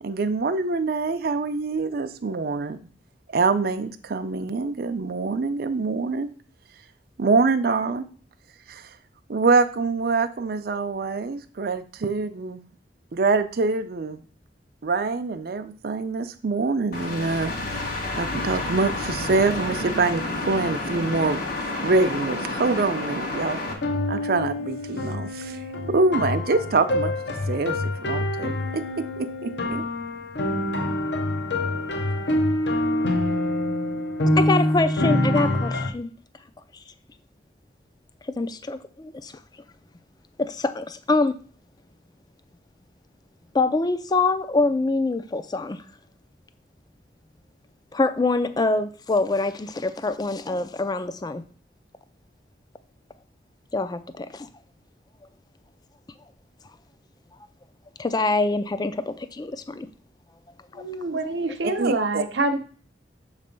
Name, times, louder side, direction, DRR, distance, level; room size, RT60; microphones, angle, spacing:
voice 1, 0.0-2.8 3.3-6.3 7.2-8.0 8.7-8.8 9.3-12.6 13.1-14.2 14.8-17.5 18.2-21.4 21.8-23.6 24.1-25.6 25.9-27.1 27.5-27.8 28.0-28.8 29.2-29.8 61.8-62.2, right 3 dB, 55° right, 0.5 m, -25 dB
sound 1, 16.9-23.7, left 2 dB, 55° left, 1.6 m, -30 dB
sound 2, 23.7-35.9, left 1 dB, 75° left, 0.9 m, -26 dB
voice 2, 34.4-36.1 38.3-39.3 40.4-41.4 43.5-45.8 47.9-51.4 53.7-54.5 58.0-59.9 60.7-60.8, left 3 dB, 25° left, 0.4 m, -25 dB
voice 3, 60.7-62.6, right 2 dB, 85° right, 0.9 m, -26 dB
6.8 x 3.2 x 5.2 m
head